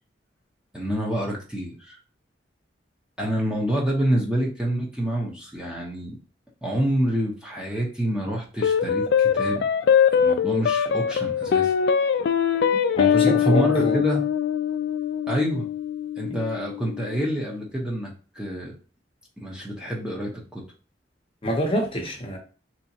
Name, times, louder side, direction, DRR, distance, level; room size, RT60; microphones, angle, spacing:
voice 1, 0.7-2.0 3.2-6.2 6.6-9.7 10.1-11.8 13.1-14.3 15.3-15.7 16.2-18.7 19.4-20.6, equal, 5° right, -3 dB, 0.7 m, -27 dB
sound 1, 8.6-17.2, left 8 dB, 65° left, 0.3 m, -22 dB
voice 2, 13.0-14.0 16.3-16.4 21.4-22.4, equal, 30° left, 1 dB, 0.7 m, -26 dB
3.3 x 2.9 x 2.7 m, 0.36 s
head